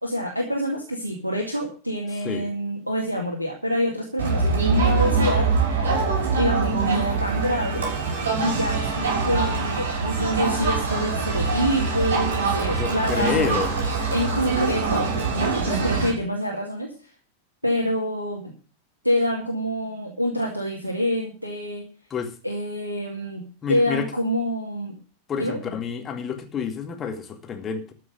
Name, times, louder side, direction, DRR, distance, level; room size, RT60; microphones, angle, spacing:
voice 1, 0.0-5.5 6.3-7.9 8.4-13.6 14.1-15.1 15.3-16.9 17.6-18.5 19.0-21.9 22.4-25.0 25.4-25.6, equal, 90° right, 0 dB, 2.2 m, -26 dB
Crowd, 4.2-16.1, right 4 dB, 65° right, 6.3 m, -24 dB
voice 2, 12.7-13.8 22.1-22.3 23.6-24.0 25.3-27.9, left 7 dB, 25° left, 6 dB, 2.3 m, -28 dB
13.5 x 6.2 x 7.8 m, 0.38 s
figure-of-eight pair, 90°, 0 cm